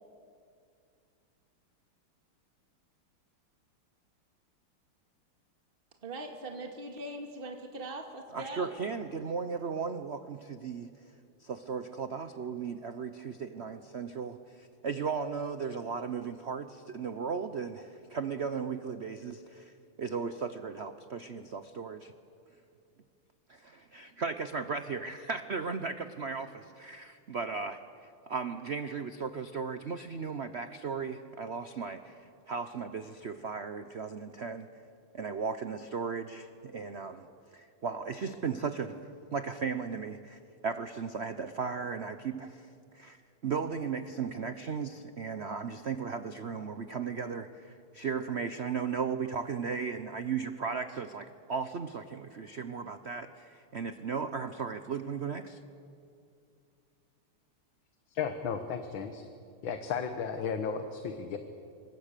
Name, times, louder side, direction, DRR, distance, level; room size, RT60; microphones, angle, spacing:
voice 1, 6.0-8.8, right 2 dB, 25° right, 3 dB, 2.1 m, -41 dB
voice 2, 8.3-10.9 11.4-19.7 20.0-22.1 23.5-34.7 35.1-37.3 37.5-39.0 39.3-42.7 42.9-55.6, right 5 dB, 90° right, 9 dB, 0.5 m, -36 dB
voice 3, 58.1-59.3 59.6-61.4, left 6 dB, 65° left, 7 dB, 1.9 m, -34 dB
27.0 x 24.5 x 6.8 m, 2.4 s
omnidirectional pair, 2.4 m